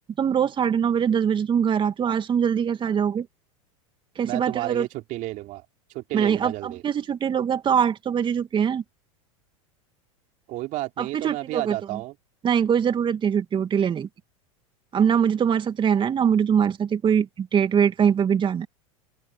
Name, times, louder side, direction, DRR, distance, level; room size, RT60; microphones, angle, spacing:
voice 1, 0.2-3.3 4.2-4.9 6.1-8.8 11.0-12.0 12.4-14.1 14.9-18.7, right 8 dB, 30° right, 2.4 m, -23 dB
voice 2, 4.2-5.6 5.9-6.8 10.5-12.1, right 18 dB, 50° right, 3.1 m, -32 dB
open air
hypercardioid pair, 100°, 17 cm